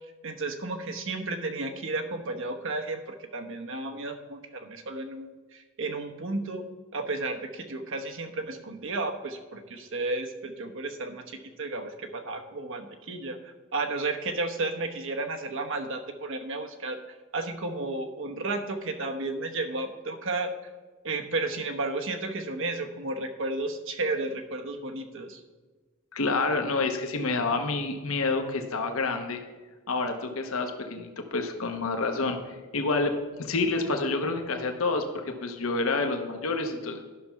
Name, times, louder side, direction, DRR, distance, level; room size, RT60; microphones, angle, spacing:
voice 1, 0.2-17.0 17.3-20.5 21.0-25.4, right 2 dB, 65° right, 5 dB, 1.0 m, -33 dB
voice 2, 26.1-29.4 29.9-32.4 32.7-33.1 33.4-37.0, left 3 dB, 70° left, 5 dB, 1.0 m, -28 dB
11.0 x 6.0 x 5.6 m, 1.3 s
head